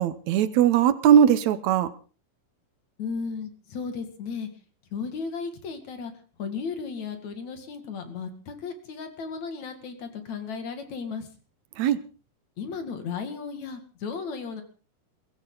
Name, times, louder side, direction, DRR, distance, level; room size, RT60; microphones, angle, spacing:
voice 1, 0.0-1.9 11.8-12.0, right 9 dB, 70° right, 1.8 m, -19 dB
voice 2, 3.0-4.5 4.9-6.1 6.4-11.3 12.6-14.6, left 5 dB, 55° left, 3.2 m, -35 dB
22.5 x 15.5 x 3.9 m
omnidirectional pair, 4.3 m